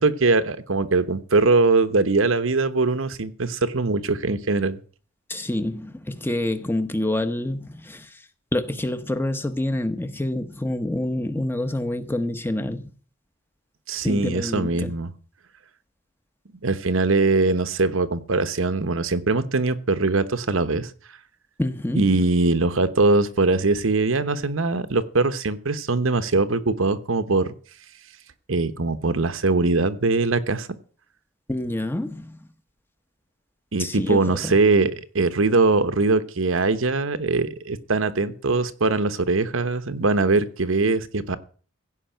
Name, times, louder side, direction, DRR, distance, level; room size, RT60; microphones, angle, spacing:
voice 1, 0.0-4.8 13.9-15.1 16.6-20.9 21.9-27.5 28.5-30.7 33.7-41.4, right 3 dB, 70° right, 1.0 m, -22 dB
voice 2, 5.3-8.2 8.5-12.9 14.0-14.9 21.6-22.2 31.5-32.4 33.8-34.5, left 1 dB, 10° left, 0.9 m, -27 dB
16.0 x 5.5 x 9.1 m
head